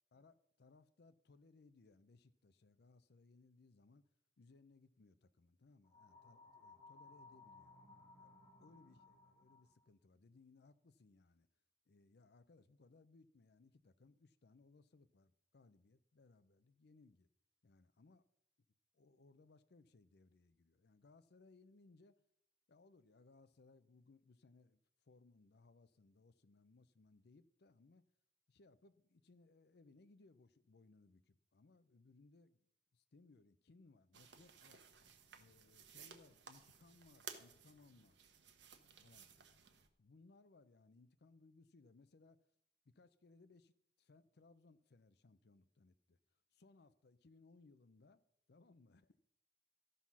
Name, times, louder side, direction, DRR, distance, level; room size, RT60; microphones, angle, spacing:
voice 1, 0.1-4.0 4.4-7.8 8.2-8.3 8.6-11.5 11.9-17.3 17.6-18.2 18.9-22.2 22.7-28.0 28.5-32.7 32.9-34.9 35.3-38.2 39.0-39.5 40.0-42.4 42.9-43.7 44.0-46.2 46.5-48.2 48.5-49.3, left 3 dB, 65° left, 0.6 m, -66 dB
sound 1, 5.8-9.8, left 3 dB, 25° left, 1.8 m, -62 dB
sound 2, 34.1-39.9, right 7 dB, 85° right, 1.1 m, -57 dB
13.5 x 5.7 x 6.1 m
head